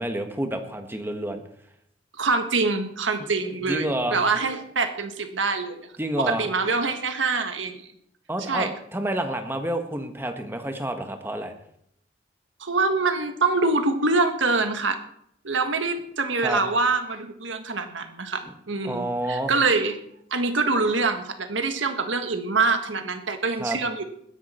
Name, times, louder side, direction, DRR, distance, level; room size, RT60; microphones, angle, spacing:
voice 1, 0.0-1.4 3.6-4.2 6.0-6.5 8.3-11.5 16.4-16.6 18.5-18.6 18.8-19.5 23.6-23.8, right 1 dB, 10° right, 5 dB, 1.5 m, -29 dB
voice 2, 2.2-5.9 6.2-7.8 8.5-8.7 12.6-15.0 15.4-20.0 20.3-24.0, right 3 dB, 90° right, 7 dB, 1.6 m, -25 dB
20.5 x 10.5 x 4.4 m, 0.72 s
head